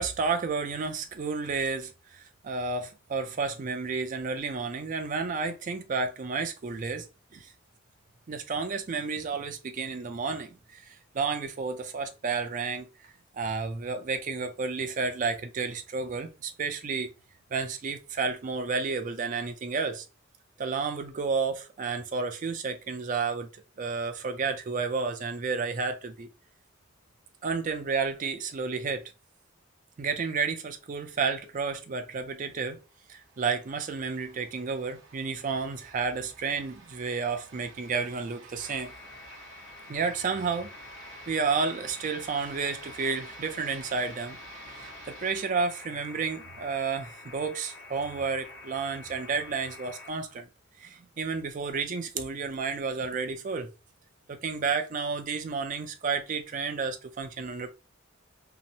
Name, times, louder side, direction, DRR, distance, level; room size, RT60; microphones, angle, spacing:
voice 1, 0.0-7.1 7.3-7.5 8.3-12.9 13.3-17.1 17.5-20.0 20.6-23.5 23.8-26.3 27.4-29.0 30.0-32.8 33.1-38.9 39.9-40.7 41.3-44.4 45.1-50.5 50.8-53.7 54.3-57.8, right 4 dB, 40° right, 0.4 m, -31 dB
sound 1, 32.8-45.3, right 3 dB, 70° right, 0.8 m, -51 dB
sound 2, 38.6-50.1, left 3 dB, 65° left, 0.8 m, -47 dB
2.8 x 2.0 x 2.6 m
head